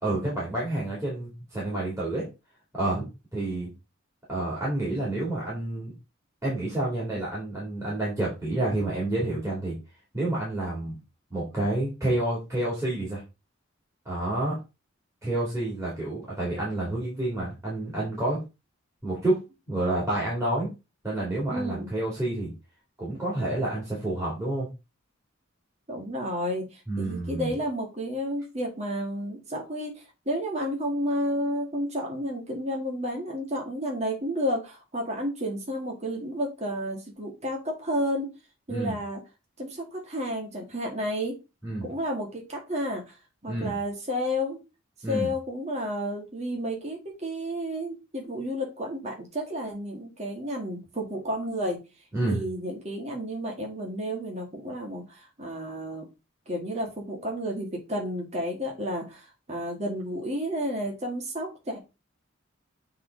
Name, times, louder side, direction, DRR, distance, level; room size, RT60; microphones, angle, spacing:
voice 1, 0.0-2.3 2.8-3.0 3.3-3.7 4.3-5.9 6.4-9.7 10.1-11.0 11.3-13.2 14.0-14.6 15.2-18.4 19.0-19.4 19.7-20.7 21.0-22.5 23.0-24.7 26.9-27.5 38.7-39.0 41.6-41.8 43.5-43.7 45.0-45.3 52.1-52.4, right 1 dB, 15° right, -6 dB, 2.8 m, -29 dB
voice 2, 21.5-21.9 25.9-38.3 38.7-39.2 39.6-41.4 41.8-43.1 43.4-44.6 45.1-51.8 52.3-56.1 56.5-61.8, equal, 35° right, 0 dB, 1.9 m, -31 dB
7.5 x 4.0 x 3.9 m, 0.27 s
head